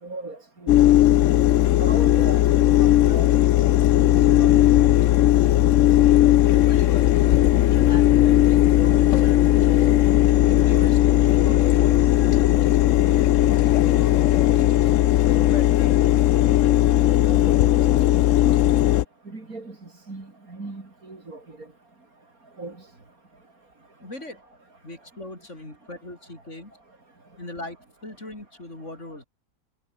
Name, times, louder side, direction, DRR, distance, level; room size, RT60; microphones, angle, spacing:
voice 1, 0.0-0.8 1.8-2.5 2.8-3.3 3.8-4.6 5.2-5.3 17.2-18.5 19.2-21.7 22.6-22.8, right 3 dB, 60° right, 4.6 m, -38 dB
sound 1, 0.7-19.0, left 13 dB, 65° left, 0.8 m, -17 dB
voice 2, 6.5-7.2 7.7-9.9 10.4-12.1 13.0-14.8 15.1-16.1 24.0-24.5 24.8-26.8 27.4-27.8 28.0-29.2, left 1 dB, 45° left, 6.5 m, -40 dB
omnidirectional pair, 1.7 m